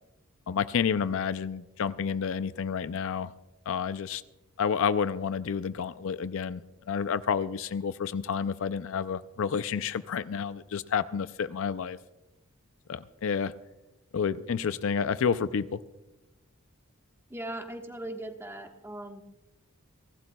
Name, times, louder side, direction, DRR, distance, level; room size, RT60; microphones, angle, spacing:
voice 1, 0.5-3.3 3.7-4.2 4.6-12.0 12.9-13.5 14.1-15.8, left 6 dB, 65° left, 14 dB, 0.4 m, -30 dB
voice 2, 17.3-19.2, right 1 dB, 10° right, 3 dB, 1.3 m, -39 dB
30.0 x 12.5 x 2.3 m, 0.98 s
head